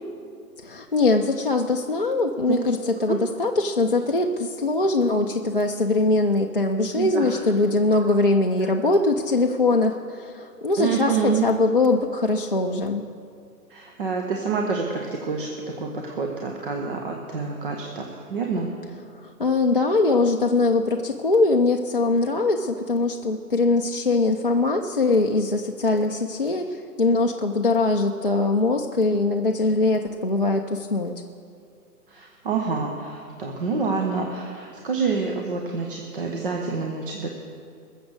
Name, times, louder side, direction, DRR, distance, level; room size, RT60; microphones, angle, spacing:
voice 1, 0.6-13.0 19.2-31.1, left 3 dB, 35° left, 2 dB, 0.4 m, -22 dB
voice 2, 6.9-7.4 10.8-11.4 13.7-18.7 32.1-37.3, right 5 dB, 35° right, 1 dB, 1.0 m, -27 dB
21.0 x 7.2 x 6.5 m, 2.3 s
hypercardioid pair, 155°, 48 cm